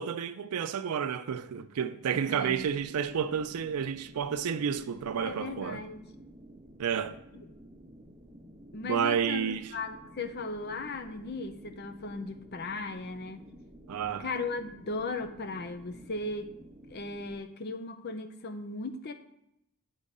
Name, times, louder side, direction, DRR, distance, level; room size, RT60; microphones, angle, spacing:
voice 1, 0.0-5.8 6.8-7.2 8.8-9.7 13.9-14.3, right 7 dB, 85° right, 0.4 m, -30 dB
sound 1, 2.0-17.4, equal, 15° right, 1.0 m, -52 dB
voice 2, 2.1-2.7 5.2-6.0 8.7-13.4 14.2-16.5 16.9-19.1, left 3 dB, 45° left, 0.6 m, -37 dB
9.0 x 3.6 x 5.4 m
head